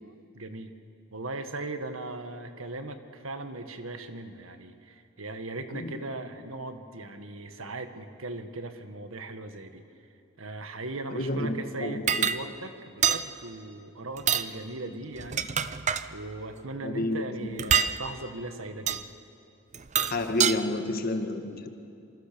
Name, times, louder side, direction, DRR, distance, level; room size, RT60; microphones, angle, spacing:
voice 1, 0.0-0.7 1.1-9.8 10.4-15.5 16.1-19.1, right 2 dB, 85° right, 7 dB, 1.7 m, -38 dB
voice 2, 11.1-12.3 16.8-17.8 20.1-21.7, left 2 dB, 45° left, 6 dB, 1.7 m, -30 dB
sound 1, 12.1-12.4 13.0-13.2 14.2-14.5 15.2-16.1 17.6-17.9 18.9-19.0 19.7-20.6, right 8 dB, 35° right, 0.6 m, -25 dB
27.5 x 25.0 x 7.0 m, 2.6 s
head